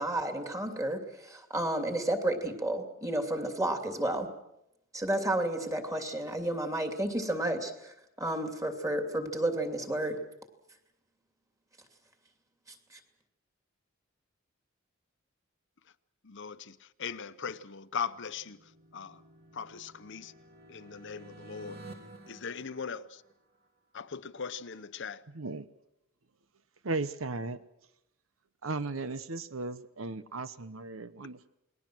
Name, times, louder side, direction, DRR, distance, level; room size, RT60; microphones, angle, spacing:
voice 1, 0.0-4.3 4.9-10.2 12.9-13.0, right 1 dB, 15° right, 2.8 m, -31 dB
voice 2, 16.3-16.7 17.0-18.6 18.9-19.2 19.6-20.3 20.7-21.8 22.3-23.0 23.9-25.2, left 6 dB, 60° left, 0.9 m, -39 dB
sound 1, 17.8-23.6, right 1 dB, 50° right, 3.1 m, -52 dB
voice 3, 25.3-25.7 26.8-27.6 28.6-31.5, right 3 dB, 75° right, 1.0 m, -36 dB
29.0 x 20.5 x 6.2 m
head